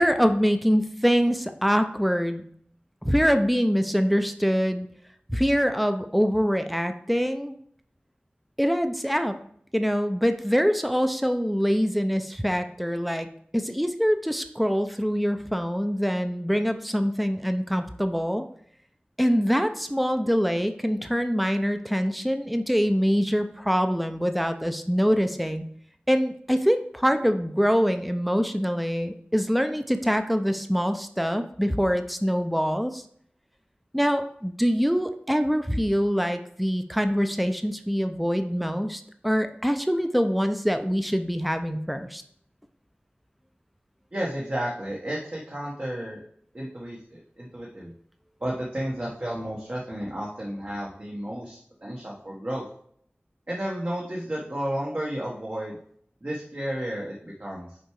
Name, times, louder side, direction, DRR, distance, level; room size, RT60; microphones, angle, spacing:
voice 1, 0.0-2.4 3.0-4.9 5.3-7.5 8.6-9.4 9.7-13.3 13.5-18.4 19.2-25.7 26.1-33.0 33.9-42.2, equal, ahead, 7 dB, 0.6 m, -24 dB
voice 2, 44.1-46.2 46.5-47.9 48.4-52.6 53.5-55.8 56.2-57.8, right 1 dB, 45° right, -4 dB, 1.3 m, -32 dB
6.6 x 4.6 x 4.7 m, 0.64 s
wide cardioid pair, 55°, 4 cm